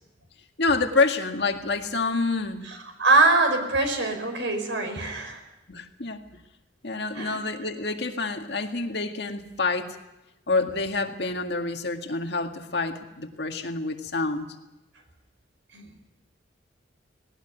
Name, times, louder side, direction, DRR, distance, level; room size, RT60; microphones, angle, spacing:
voice 1, 0.6-2.6 5.7-6.3 6.8-10.0 10.5-14.5, left 3 dB, 65° left, 4 dB, 1.9 m, -27 dB
voice 2, 3.0-5.4 7.1-7.4 15.7-15.9, right 3 dB, 80° right, 6 dB, 5.0 m, -23 dB
19.0 x 18.5 x 9.2 m, 0.95 s
head